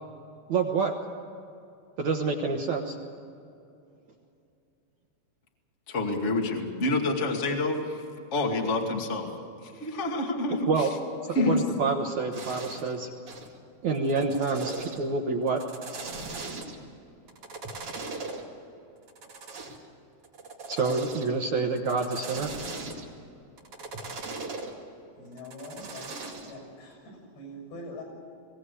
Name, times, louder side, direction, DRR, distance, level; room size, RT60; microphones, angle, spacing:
voice 1, 0.5-1.0 2.0-3.0 10.7-10.9 11.4-13.1 13.8-15.6 20.7-22.5, right 4 dB, 65° right, 2 dB, 1.9 m, -27 dB
voice 2, 5.9-8.0 8.3-9.3 9.6-10.9 11.3-11.6, left 2 dB, 25° left, 1 dB, 1.7 m, -28 dB
voice 3, 11.2-11.6 25.2-26.1 26.5-28.0, left 1 dB, 90° left, 1 dB, 8.9 m, -43 dB
sound 1, 12.3-12.9 13.3-13.5 13.9-15.1 15.5-16.8 17.3-18.4 19.1-19.8 20.2-21.4 21.8-23.1 23.6-24.7 25.4-26.5, right 3 dB, 40° right, 2.8 m, -38 dB
22.5 x 17.5 x 8.4 m, 2.7 s
omnidirectional pair, 4.7 m